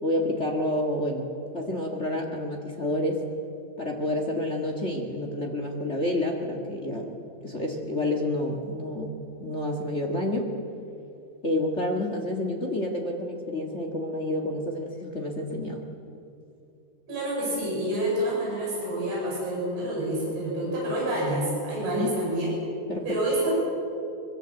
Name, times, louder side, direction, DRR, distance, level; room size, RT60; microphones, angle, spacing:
voice 1, 0.0-3.2 3.8-7.1 7.4-10.5 11.4-15.8 21.8-22.1 22.9-23.0, left 1 dB, 45° left, 1 dB, 0.9 m, -29 dB
voice 2, 17.1-22.5 23.1-23.5, right 1 dB, 75° right, -5 dB, 10.0 m, -28 dB
24.0 x 23.0 x 7.9 m, 2.7 s
omnidirectional pair, 4.7 m